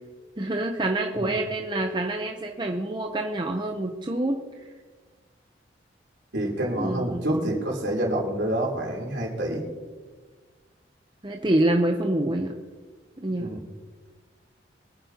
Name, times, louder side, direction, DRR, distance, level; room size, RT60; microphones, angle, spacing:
voice 1, 0.4-4.4 6.8-7.6 11.2-12.5 13.2-13.5, right 1 dB, 25° right, 3 dB, 0.7 m, -26 dB
voice 2, 6.3-9.6 13.4-13.6, right 1 dB, 70° right, -1 dB, 3.5 m, -27 dB
24.0 x 9.6 x 2.9 m, 1.4 s
head